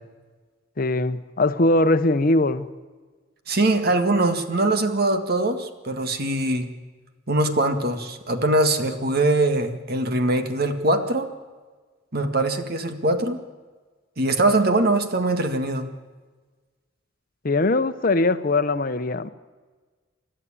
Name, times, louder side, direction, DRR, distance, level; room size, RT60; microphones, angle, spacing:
voice 1, 0.8-2.7 17.4-19.3, left 2 dB, 50° left, 11 dB, 0.9 m, -21 dB
voice 2, 3.5-6.7 7.3-11.3 12.1-13.4 14.2-15.9, right 2 dB, 55° right, 7 dB, 1.8 m, -22 dB
29.5 x 12.5 x 8.7 m, 1.4 s
head